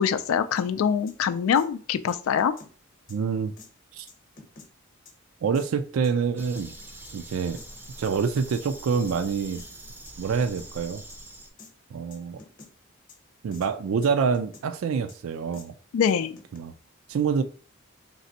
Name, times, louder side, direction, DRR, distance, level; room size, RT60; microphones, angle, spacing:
voice 1, 0.0-2.5 15.9-16.4, left 7 dB, 90° left, 0.3 m, -24 dB
sound 1, 0.6-0.7 1.1-1.2 1.5-1.7 2.1-2.7 3.1-3.2 3.6-3.7 4.1-4.7 5.0-5.1 5.5-5.7 6.0-6.7 7.0-7.1 7.5-7.7 8.0-8.7 9.1-9.2 9.5-9.7 10.1-10.2 10.4-10.7 11.1-11.2 11.6-11.7 12.1-12.7 13.1-13.2 13.5-13.7 14.0-14.7 15.1-15.2 15.5-15.7 16.1-16.6, left 3 dB, 40° left, 0.8 m, -48 dB
voice 2, 3.1-3.5 3.9-4.1 5.4-6.7 7.1-7.6 8.0-9.6 10.2-11.0 11.9-12.4 13.4-15.7 16.5-16.7 17.1-17.4, right 6 dB, 85° right, 0.4 m, -26 dB
sound 2, 6.4-11.5, right 1 dB, 10° right, 0.4 m, -44 dB
4.0 x 3.3 x 2.8 m
head